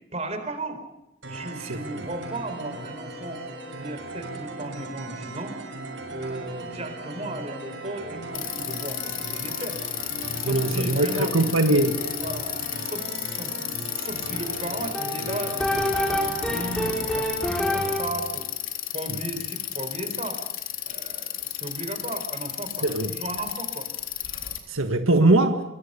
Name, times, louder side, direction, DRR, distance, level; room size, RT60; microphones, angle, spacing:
voice 1, 0.1-0.8 1.3-3.4 3.8-5.6 6.1-9.8 10.4-11.4 12.2-12.6 12.8-18.5 18.9-20.4 20.9-23.9 24.8-24.9, right 2 dB, 30° right, 4.2 m, -35 dB
sound 1, 1.2-17.2, right 2 dB, 65° right, 6.6 m, -38 dB
Bicycle, 8.3-24.6, left 11 dB, 75° left, 3.5 m, -33 dB
voice 2, 10.4-12.0 19.1-19.2 22.8-23.1 24.7-25.6, right 2 dB, 90° right, 1.7 m, -21 dB
sound 2, 14.9-18.3, equal, 5° left, 4.1 m, -27 dB
25.0 x 23.0 x 6.8 m
head